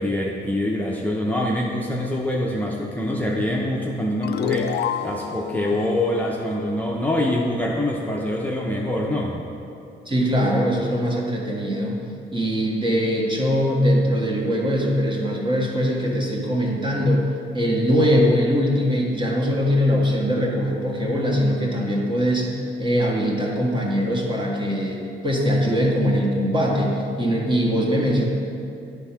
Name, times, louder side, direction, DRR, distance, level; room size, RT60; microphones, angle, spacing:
voice 1, 0.0-9.4, left 1 dB, 10° left, -3 dB, 0.7 m, -25 dB
sound 1, 4.2-7.4, left 9 dB, 55° left, 0.4 m, -30 dB
voice 2, 10.0-12.0 12.3-17.3 17.5-28.2, equal, 25° right, -2 dB, 1.6 m, -21 dB
9.4 x 3.6 x 5.8 m, 2.6 s
cardioid pair, 90°, 20 cm